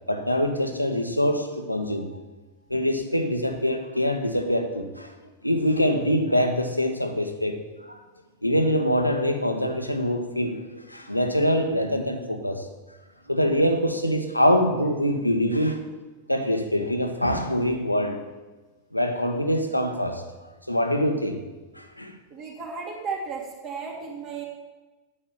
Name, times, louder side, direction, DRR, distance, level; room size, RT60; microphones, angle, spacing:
voice 1, 0.1-2.1 2.7-5.1 5.4-8.0 8.4-10.6 10.9-12.7 13.3-15.8 16.3-18.2 18.9-20.2 20.7-21.4 21.7-22.1, equal, 90° left, 5 dB, 1.1 m, -24 dB
voice 2, 22.3-24.4, right 5 dB, 35° right, -2 dB, 3.3 m, -34 dB
8.9 x 8.8 x 7.7 m, 1.2 s
figure-of-eight pair, 90°, 0 cm